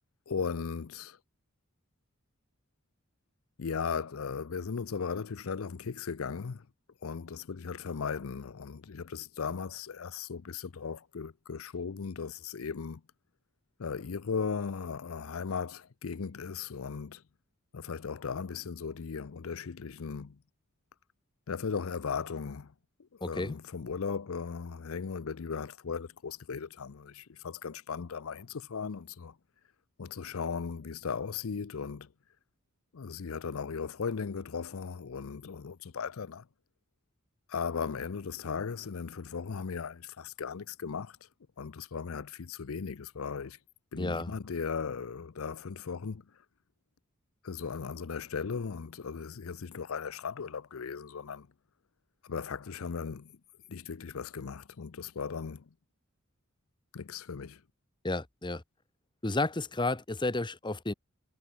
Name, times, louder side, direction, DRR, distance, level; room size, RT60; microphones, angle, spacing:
voice 1, 0.3-1.2 3.6-6.7 7.0-13.0 13.8-17.2 17.7-20.4 21.5-22.7 23.3-29.4 30.0-32.1 32.9-36.4 37.5-41.3 41.6-43.6 43.9-46.2 47.4-51.5 52.2-53.4 53.7-55.6 56.9-57.6, left 5 dB, 75° left, 0.6 m, -37 dB
voice 2, 23.2-23.6 44.0-44.3 58.0-58.6 59.2-60.9, left 2 dB, 20° left, 1.2 m, -32 dB
head